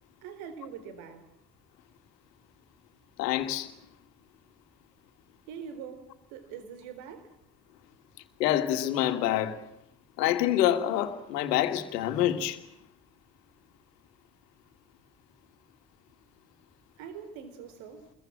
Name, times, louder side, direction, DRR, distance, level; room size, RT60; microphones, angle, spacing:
voice 1, 0.2-1.2 5.5-7.3 17.0-18.0, right 7 dB, 75° right, 4.1 m, -43 dB
voice 2, 3.2-3.7 8.4-9.6 10.2-12.7, left 12 dB, 80° left, 2.0 m, -26 dB
27.0 x 22.5 x 7.5 m
hypercardioid pair, 50°, 48 cm